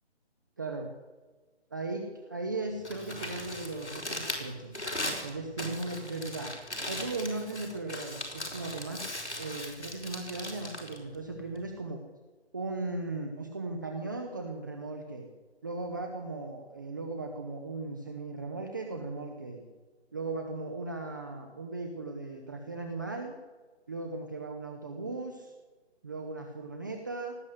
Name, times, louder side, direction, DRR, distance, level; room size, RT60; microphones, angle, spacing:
voice 1, 0.6-0.9 1.7-4.8 5.2-6.5 6.9-12.0 12.5-15.3 15.6-19.7 20.1-23.4 23.9-25.5 26.0-27.4, right 3 dB, 20° right, 4 dB, 0.8 m, -37 dB
Crumpling crinkling, 2.7-11.8, left 1 dB, 80° left, 4.5 m, -39 dB
18.0 x 9.8 x 8.3 m, 1.4 s
figure-of-eight pair, 150°, 33 cm